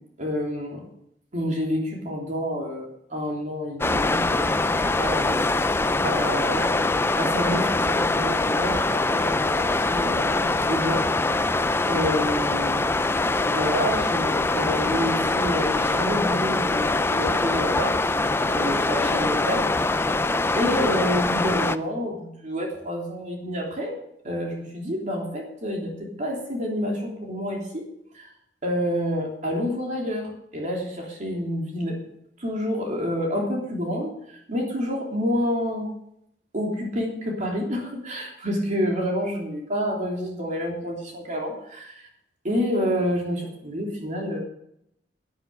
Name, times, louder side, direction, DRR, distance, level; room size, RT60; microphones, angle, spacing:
voice 1, 0.2-0.8 1.3-2.8 3.1-6.8 7.2-11.4 11.9-12.9 13.4-20.2 20.6-23.9 24.2-27.8 28.1-28.3 28.6-32.0 32.4-35.9 36.5-42.1 42.4-44.4, equal, 45° right, -1 dB, 3.3 m, -29 dB
sound 1, 3.8-21.8, left 2 dB, 15° left, 0.5 m, -23 dB
12.0 x 10.5 x 6.4 m, 0.75 s
head